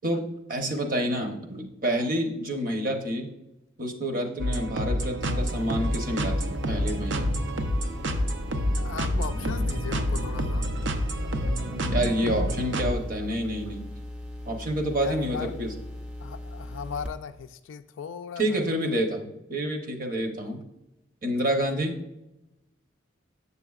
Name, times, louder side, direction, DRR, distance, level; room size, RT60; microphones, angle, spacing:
voice 1, 0.0-3.3 3.8-7.3 11.9-13.8 14.5-15.7 18.4-20.6 21.2-22.0, equal, 45° right, 3 dB, 0.9 m, -28 dB
sound 1, 4.4-12.9, equal, 70° right, 0.6 m, -28 dB
sound 2, 5.2-17.1, left 1 dB, 5° right, 0.5 m, -39 dB
Sink (filling or washing), 6.6-13.9, left 1 dB, 85° right, 1.5 m, -41 dB
voice 2, 8.8-10.7 15.0-15.5 16.2-18.8 20.4-20.5 21.4-21.5, left 6 dB, 75° left, 9 dB, 0.3 m, -38 dB
7.7 x 6.8 x 2.4 m, 0.92 s
head